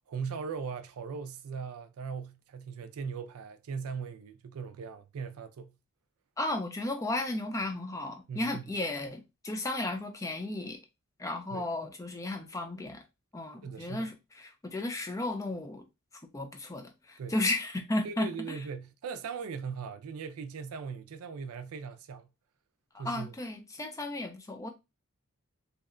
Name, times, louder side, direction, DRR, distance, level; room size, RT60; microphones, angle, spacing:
voice 1, 0.1-5.7 8.3-8.6 11.5-11.7 13.6-14.1 17.2-17.3 18.0-22.3 23.0-23.3, right 6 dB, 75° right, 0.4 m, -39 dB
voice 2, 6.4-10.8 11.2-13.0 13.3-15.8 16.3-18.6 22.9-24.7, left 2 dB, 15° left, 0.3 m, -34 dB
2.7 x 2.1 x 2.4 m
head